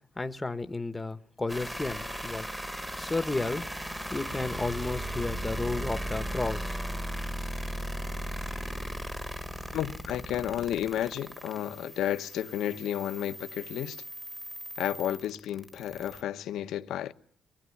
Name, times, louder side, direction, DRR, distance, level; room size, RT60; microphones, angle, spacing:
voice 1, 0.2-2.4 3.0-3.6 4.1-6.8, left 2 dB, 15° left, 1.2 m, -32 dB
sound 1, 1.5-16.2, right 1 dB, 5° right, 1.5 m, -37 dB
voice 2, 9.7-14.0 14.8-17.1, left 11 dB, 80° left, 1.2 m, -32 dB
24.0 x 19.5 x 9.8 m
cardioid pair, 125°, 0 cm